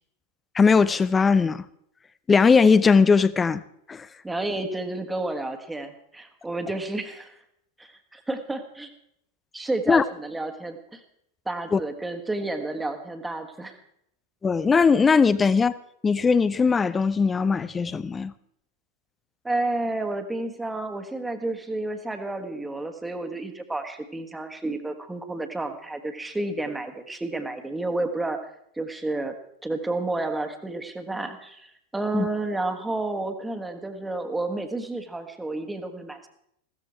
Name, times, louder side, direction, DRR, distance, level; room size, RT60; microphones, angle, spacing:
voice 1, 0.5-1.7 2.3-3.6 3.9-4.1 9.9-10.0 11.7-11.8 14.4-15.7 16.0-18.3 32.1-32.3, left 5 dB, 15° left, 0.6 m, -19 dB
voice 2, 4.2-7.4 7.8-8.9 9.5-11.0 11.4-13.8 19.4-29.3 29.6-36.3, right 2 dB, 5° right, 1.5 m, -31 dB
16.0 x 13.5 x 4.5 m
figure-of-eight pair, 90°, 0 cm